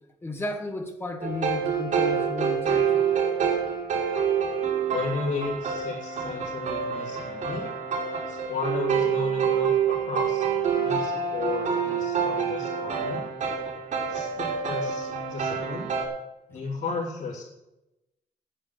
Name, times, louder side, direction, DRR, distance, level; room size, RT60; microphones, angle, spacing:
voice 1, 0.2-3.1, left 2 dB, 20° left, 4 dB, 1.8 m, -34 dB
sound 1, 1.2-16.1, right 6 dB, 70° right, 5.1 m, -27 dB
voice 2, 4.9-7.7 8.3-10.4 10.7-13.2 14.1-15.9 16.5-17.4, left 4 dB, 75° left, -7 dB, 3.5 m, -34 dB
10.5 x 9.0 x 8.0 m, 0.92 s
wide cardioid pair, 165°, 13 cm